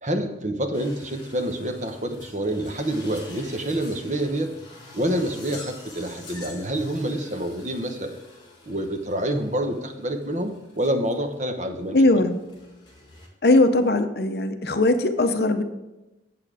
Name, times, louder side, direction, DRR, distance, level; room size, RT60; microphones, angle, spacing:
voice 1, 0.0-4.5 4.9-8.2 8.6-12.0, right 1 dB, 40° right, 5 dB, 0.9 m, -27 dB
sound 1, 0.7-13.3, left 2 dB, 25° left, 2.0 m, -47 dB
voice 2, 11.9-12.4 13.4-15.6, left 2 dB, 55° left, 8 dB, 0.6 m, -19 dB
8.8 x 7.5 x 4.9 m, 1.0 s
head